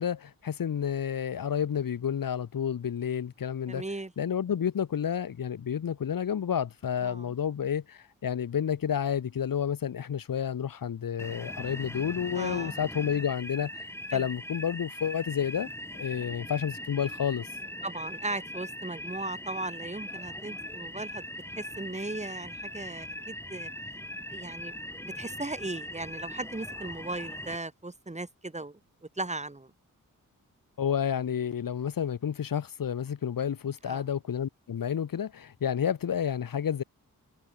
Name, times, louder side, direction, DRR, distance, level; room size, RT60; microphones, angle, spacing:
voice 1, 0.0-3.8 4.2-15.7 16.0-17.5 30.8-36.8, left 8 dB, 70° left, 1.0 m, -30 dB
voice 2, 3.6-4.1 7.0-7.3 12.3-12.7 14.1-14.2 17.8-23.7 24.3-24.7 25.0-28.8 29.2-29.7 33.8-34.0, right 2 dB, 20° right, 3.3 m, -37 dB
sound 1, 11.2-27.6, left 1 dB, 5° left, 6.0 m, -40 dB
wide cardioid pair, 115°, 34 cm